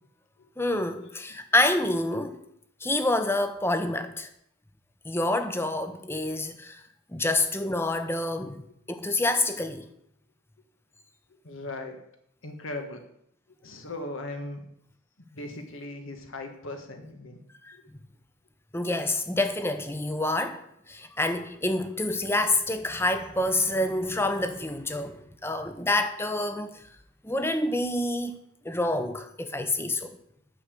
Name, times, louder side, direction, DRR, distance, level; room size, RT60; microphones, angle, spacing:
voice 1, 0.6-2.4 2.8-4.3 5.0-6.8 7.1-8.6 8.9-9.8 17.6-17.8 18.7-26.8 27.2-28.4 28.6-30.2, left 2 dB, 10° left, 0.8 m, -27 dB
voice 2, 11.4-12.0 12.4-13.0 13.6-14.6 15.3-17.4 17.7-17.8, left 2 dB, 75° left, 1.6 m, -38 dB
9.9 x 6.6 x 8.3 m
head